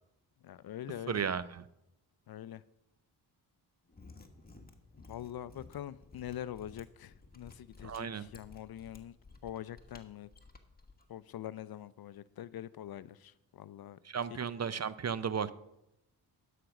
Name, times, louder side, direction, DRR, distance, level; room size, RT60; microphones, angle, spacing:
voice 1, 0.4-1.2 2.3-2.6 5.1-9.2 9.4-10.3 11.1-14.0 14.3-14.4, left 11 dB, 50° left, 0.5 m, -44 dB
voice 2, 1.1-1.6 7.8-8.3 14.1-15.5, right 7 dB, 35° right, 0.5 m, -34 dB
Mechanisms, 3.8-11.0, left 3 dB, 20° left, 1.4 m, -55 dB
11.5 x 5.1 x 5.9 m
supercardioid pair, 40°, 47 cm